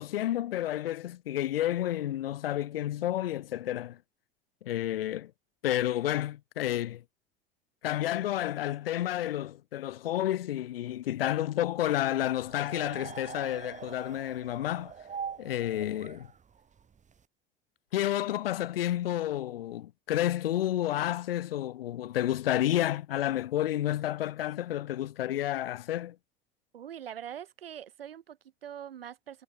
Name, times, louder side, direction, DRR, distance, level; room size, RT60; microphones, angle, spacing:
voice 1, 0.0-4.0 4.6-5.3 5.6-7.0 7.8-14.9 15.4-16.3 17.9-26.2, left 13 dB, 75° left, 0.5 m, -30 dB
sound 1, 12.3-17.2, right 7 dB, 25° right, 3.8 m, -43 dB
voice 2, 26.7-29.4, right 9 dB, 70° right, 6.7 m, -43 dB
figure-of-eight pair, 75°, 30 cm